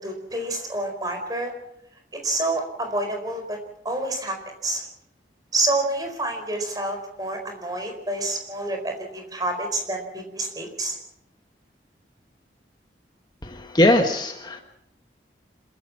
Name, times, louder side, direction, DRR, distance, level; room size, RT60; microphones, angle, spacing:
voice 1, 0.0-1.5 2.2-3.6 3.8-4.8 5.5-11.0, right 2 dB, 20° right, 4 dB, 4.4 m, -28 dB
voice 2, 13.4-14.6, left 1 dB, 25° left, 4 dB, 1.4 m, -20 dB
26.5 x 14.5 x 7.5 m, 0.78 s
head